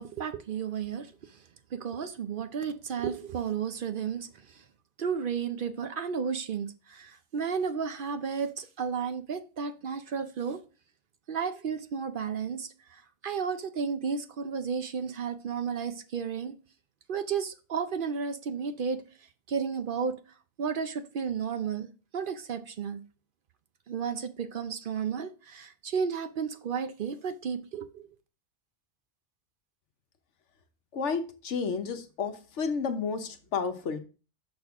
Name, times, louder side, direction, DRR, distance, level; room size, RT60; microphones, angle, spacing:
voice 1, 0.0-1.4 1.7-4.6 5.0-10.6 11.3-16.5 17.1-20.2 20.6-23.0 23.9-28.1, right 6 dB, 55° right, 0.7 m, -33 dB
voice 2, 30.9-34.0, left 5 dB, 85° left, 1.2 m, -31 dB
6.4 x 6.0 x 3.5 m
omnidirectional pair, 1.2 m